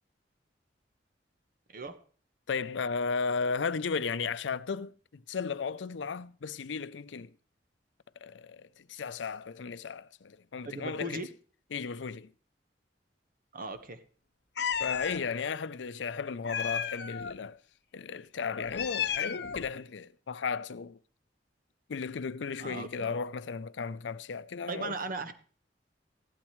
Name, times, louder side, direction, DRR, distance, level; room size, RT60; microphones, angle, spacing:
voice 1, 1.7-2.0 10.6-11.3 13.5-14.0 22.6-23.2 24.7-25.3, right 2 dB, 50° right, 1.3 m, -38 dB
voice 2, 2.5-7.3 8.2-11.2 11.7-12.3 14.8-17.6 17.9-21.0 21.9-25.0, left 5 dB, 90° left, 0.5 m, -35 dB
Meow, 14.6-15.2 16.4-17.3 18.6-19.7, left 8 dB, 65° left, 0.8 m, -33 dB
15.5 x 12.0 x 3.2 m
head